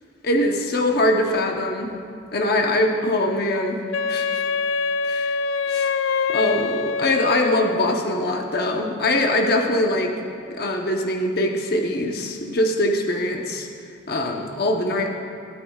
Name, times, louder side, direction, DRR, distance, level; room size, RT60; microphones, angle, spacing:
voice 1, 0.2-1.9 2.3-3.8 4.1-4.3 5.0-5.3 5.7-5.9 6.3-10.1 10.5-13.7 14.1-15.1, left 1 dB, 55° left, 2 dB, 0.9 m, -22 dB
Wind instrument woodwind instrument, 3.9-8.0, left 4 dB, 85° left, 0.3 m, -24 dB
18.5 x 12.5 x 2.4 m, 2.5 s
head